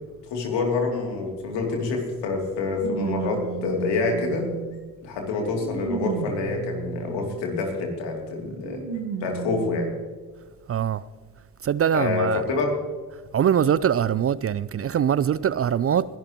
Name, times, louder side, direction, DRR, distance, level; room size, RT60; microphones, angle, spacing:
voice 1, 0.3-4.5 5.0-8.8 9.2-9.9 11.9-12.7, left 4 dB, 75° left, 2.9 m, -27 dB
sound 1, 1.6-1.7 2.8-4.8 5.4-7.4 8.6-10.0 10.8-10.9 12.0-12.1, right 7 dB, 70° right, 1.4 m, -33 dB
voice 2, 10.7-11.0 11.6-12.4 13.3-16.0, right 9 dB, 35° right, 0.4 m, -22 dB
21.0 x 12.0 x 3.0 m
hypercardioid pair, 45°, 43 cm